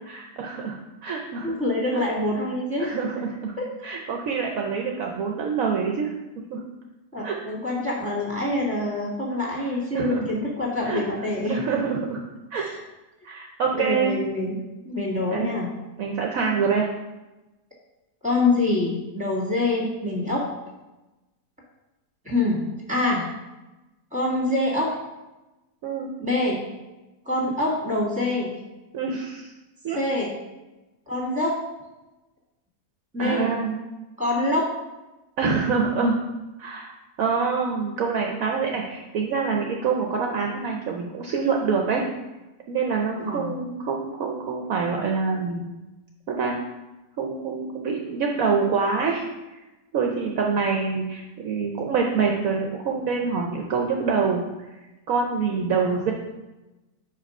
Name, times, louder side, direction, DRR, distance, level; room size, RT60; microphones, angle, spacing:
voice 1, 0.1-1.5 1.9-2.0 2.8-3.5 3.8-6.1 6.5-6.6 7.2-7.4 9.9-10.3 10.8-11.0 11.5-12.2 12.5-12.7 13.2-14.2 15.3-15.5 16.0-16.9 25.8-26.1 28.9-29.5 29.8-30.0 33.2-33.7 35.4-36.1 36.6-36.9 37.2-42.0 42.7-45.6 46.3-46.6 47.2-49.3 49.9-54.4 55.1-56.1, right 5 dB, 65° right, 1 dB, 1.0 m, -26 dB
voice 2, 1.4-3.0 3.6-3.7 7.1-11.6 12.5-12.8 13.7-14.6 14.8-15.7 18.2-20.5 22.2-23.3 24.1-25.0 26.2-26.6 27.3-28.6 29.9-30.3 31.1-31.6 33.1-33.5 34.2-34.7 43.2-43.5 55.7-56.1, left 2 dB, 5° right, -4 dB, 1.9 m, -25 dB
5.0 x 5.0 x 5.3 m, 1.1 s
omnidirectional pair, 1.7 m